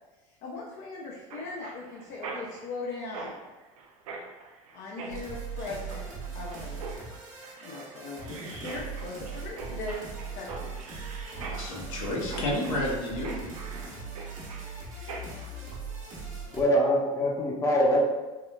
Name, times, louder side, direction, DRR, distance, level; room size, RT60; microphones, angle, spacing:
voice 1, 0.3-3.4 4.7-6.1 6.3-7.0 7.6-10.0 10.3-10.8, left 3 dB, 50° left, -4 dB, 0.6 m, -39 dB
Mechanisms, 1.3-15.5, right 4 dB, 85° right, 0.5 m, -44 dB
sound 1, 5.1-16.6, right 4 dB, 45° right, 1.0 m, -39 dB
voice 2, 11.4-13.4, left 1 dB, 75° left, -3 dB, 0.9 m, -31 dB
voice 3, 16.5-18.0, equal, 15° left, -3 dB, 0.7 m, -23 dB
3.5 x 2.3 x 2.2 m, 1.2 s
hypercardioid pair, 85°, 18 cm